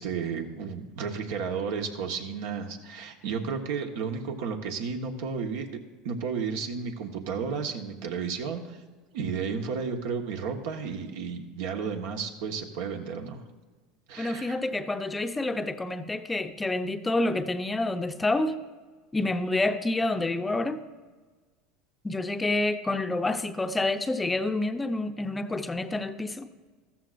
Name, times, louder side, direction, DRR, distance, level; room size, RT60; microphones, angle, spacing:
voice 1, 0.0-5.7 6.0-8.8 9.1-13.4 14.1-14.6, right 5 dB, 75° right, 4 dB, 1.2 m, -32 dB
voice 2, 14.2-18.6 19.1-20.8 22.0-26.5, left 2 dB, 15° left, 8 dB, 0.6 m, -28 dB
14.0 x 13.5 x 2.5 m, 1.3 s
supercardioid pair, 105°, 0 cm